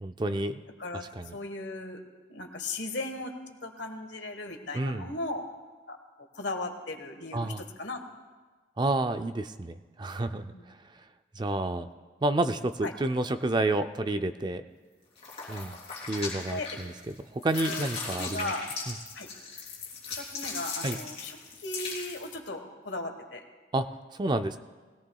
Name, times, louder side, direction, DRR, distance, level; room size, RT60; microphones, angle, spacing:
voice 1, 0.0-0.6 1.2-1.3 4.7-5.1 7.3-7.6 8.8-10.5 11.4-11.9 12.2-14.6 15.5-15.8 16.1-18.5 20.8-21.0 23.7-23.9 24.1-24.6, right 2 dB, 25° right, 9 dB, 0.4 m, -29 dB
voice 2, 1.3-2.0 2.3-5.4 5.9-6.0 6.3-8.0 10.5-10.6 12.8-12.9 16.5-16.7 17.5-17.9 18.2-18.7 19.1-19.3 20.2-23.4, left 2 dB, 80° left, 5 dB, 1.4 m, -37 dB
sound 1, 15.2-17.1 17.4-22.3, left 4 dB, 35° left, 3.3 m, -38 dB
20.0 x 17.0 x 2.3 m, 1.4 s
head